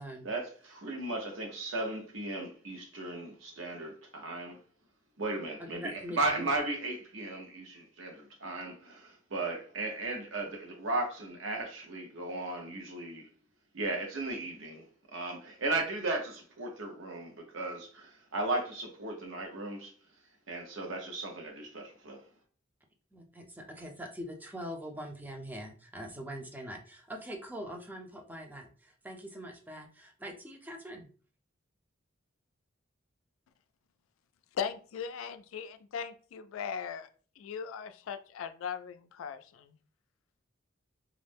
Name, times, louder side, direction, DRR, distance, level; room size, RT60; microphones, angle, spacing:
voice 1, 0.2-4.6 5.2-13.3 13.7-19.9 20.5-22.2, right 2 dB, 75° right, 0.8 m, -36 dB
voice 2, 5.7-6.5 23.1-31.1, equal, 10° right, 0.4 m, -43 dB
voice 3, 34.6-37.1 37.4-39.7, left 7 dB, 90° left, 0.3 m, -38 dB
2.4 x 2.1 x 3.3 m
head